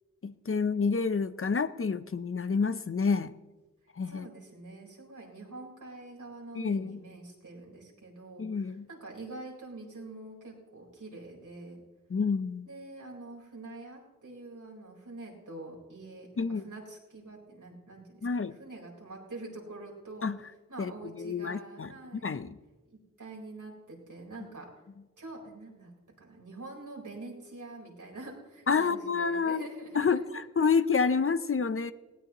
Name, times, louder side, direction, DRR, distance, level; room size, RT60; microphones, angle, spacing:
voice 1, 0.2-3.3 4.0-4.3 6.6-7.0 8.4-8.9 12.1-12.7 16.4-16.6 18.2-18.5 20.2-20.4 20.8-20.9 21.2-21.9 22.2-22.5 28.7-29.7 29.9-31.9, left 5 dB, 45° left, 13 dB, 0.7 m, -28 dB
voice 2, 4.0-11.8 12.6-22.4 22.9-24.7 25.2-25.9 26.2-30.2, right 2 dB, 85° right, -2 dB, 4.3 m, -45 dB
19.0 x 17.5 x 3.0 m, 1.2 s
wide cardioid pair, 80°, 30 cm